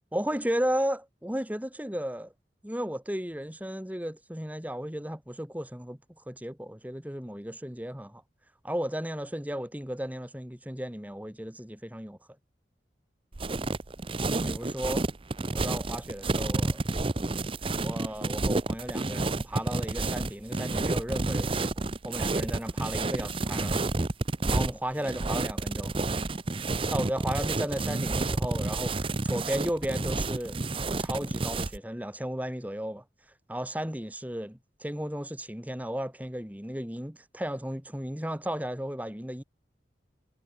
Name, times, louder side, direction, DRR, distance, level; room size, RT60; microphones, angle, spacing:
voice 1, 0.1-2.3 2.6-6.0 6.3-8.2 8.6-12.2 14.4-15.1 15.5-16.8 17.8-21.7 22.0-23.8 24.5-25.9 26.9-30.6 31.0-33.0 33.5-39.4, equal, 10° right, 2.5 m, -34 dB
sound 1, 13.3-31.8, right 2 dB, 30° right, 0.7 m, -30 dB
head